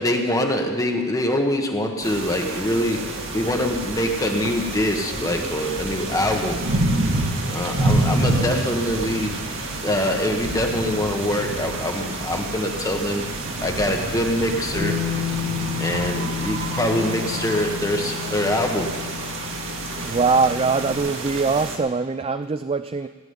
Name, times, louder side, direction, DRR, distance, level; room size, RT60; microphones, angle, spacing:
voice 1, 0.0-6.6 7.5-9.3 9.8-13.2 13.6-15.0 15.8-19.1, left 1 dB, 15° left, 3 dB, 1.2 m, -24 dB
sound 1, 2.0-21.8, right 2 dB, 65° right, 2.1 m, -28 dB
Bass guitar, 14.7-21.0, left 10 dB, 65° left, 3.0 m, -31 dB
voice 2, 20.0-23.1, right 4 dB, 25° right, 11 dB, 0.4 m, -22 dB
16.0 x 7.0 x 9.7 m, 1.4 s
head